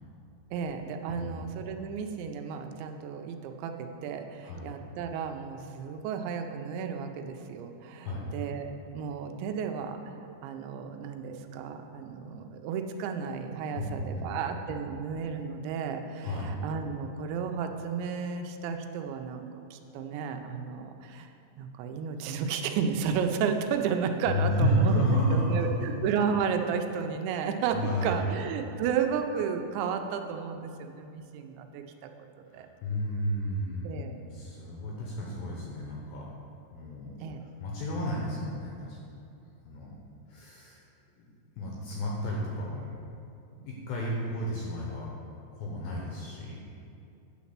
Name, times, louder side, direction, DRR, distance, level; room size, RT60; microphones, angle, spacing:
voice 1, 0.5-10.0 10.4-21.3 21.6-32.1 32.5-32.7 33.8-34.2 37.2-37.5, right 6 dB, 85° right, 6 dB, 2.9 m, -33 dB
voice 2, 8.0-8.4 13.8-14.5 16.2-16.5 24.3-25.6 27.7-28.3 32.5-36.3 36.7-37.1 37.6-39.0 39.7-39.9 40.3-40.8 41.2-43.0 43.5-45.1 45.6-46.6, equal, 75° left, -3 dB, 2.3 m, -31 dB
9.4 x 4.2 x 7.2 m, 2.6 s
omnidirectional pair, 5.1 m